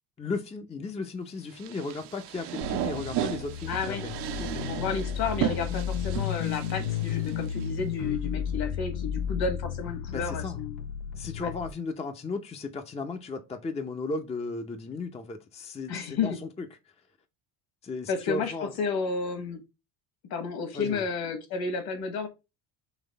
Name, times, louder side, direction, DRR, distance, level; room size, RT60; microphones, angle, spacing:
voice 1, 0.2-4.1 10.1-10.6 11.1-16.7 17.8-18.7 20.7-21.1, left 3 dB, 15° left, 0.5 m, -35 dB
sound 1, 1.5-7.6, right 12 dB, 65° right, 0.7 m, -35 dB
sound 2, 2.6-11.7, left 8 dB, 85° left, 0.6 m, -33 dB
voice 2, 3.7-4.0 4.4-10.8 11.4-11.5 15.9-16.4 18.1-18.5 18.8-19.6 20.3-22.3, left 5 dB, 55° left, 1.5 m, -31 dB
4.0 x 3.0 x 3.9 m
supercardioid pair, 105°, 44 cm